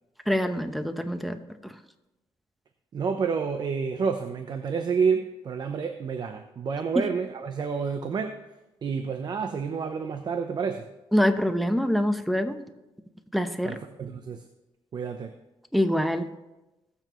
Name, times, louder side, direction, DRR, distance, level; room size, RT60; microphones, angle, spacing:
voice 1, 0.3-1.8 6.9-7.0 11.1-12.6 13.3-13.8 15.7-16.3, equal, ahead, 8 dB, 0.9 m, -25 dB
voice 2, 2.9-8.4 8.8-10.9 13.6-14.4 14.9-15.4, right 5 dB, 50° right, 7 dB, 0.7 m, -29 dB
21.0 x 7.1 x 3.1 m, 1.0 s
cardioid pair, 100°, 9 cm